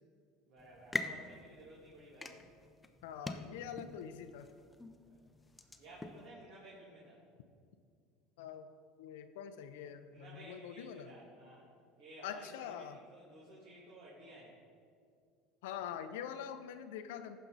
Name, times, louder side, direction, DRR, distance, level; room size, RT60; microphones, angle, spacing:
voice 1, 0.4-2.5 3.1-3.7 5.0-5.2 5.8-7.2 10.1-11.7 12.0-14.6, right 1 dB, 70° right, -7 dB, 2.4 m, -55 dB
sound 1, 0.6-6.3, left 2 dB, 15° left, 0.6 m, -45 dB
voice 2, 3.0-4.5 8.4-8.7 9.0-11.1 12.2-13.0 15.6-17.4, left 9 dB, 80° left, 9 dB, 0.5 m, -44 dB
14.5 x 5.5 x 4.0 m, 2.2 s
supercardioid pair, 95°, 0 cm